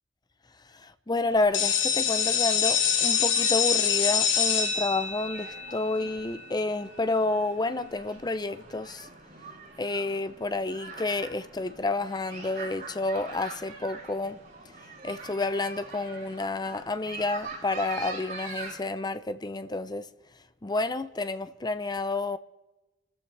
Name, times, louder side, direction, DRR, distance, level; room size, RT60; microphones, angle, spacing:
voice 1, 0.7-9.1 9.8-14.4 14.7-14.8 15.0-20.1 20.6-22.4, left 2 dB, 20° left, 0.6 m, -30 dB
sound 1, 1.2-18.8, right 4 dB, 50° right, 7.4 m, -44 dB
sound 2, 1.5-7.2, left 7 dB, 65° left, 1.5 m, -26 dB
26.0 x 14.0 x 3.3 m
head